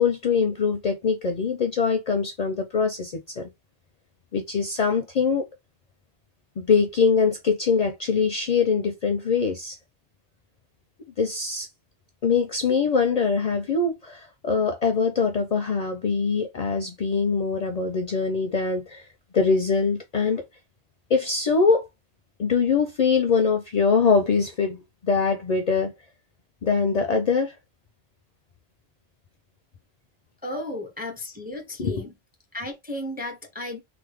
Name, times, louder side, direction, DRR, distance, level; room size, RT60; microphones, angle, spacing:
voice 1, 0.0-3.5 4.3-5.4 6.6-9.8 11.2-11.7 12.2-19.0 19.3-20.4 21.1-21.9 22.4-25.9 26.6-27.5 30.5-30.8 31.8-32.0, left 5 dB, 50° left, 0.5 m, -23 dB
voice 2, 30.4-32.1 32.5-33.8, left 1 dB, 10° right, 0.5 m, -34 dB
3.3 x 2.0 x 3.4 m
omnidirectional pair, 1.0 m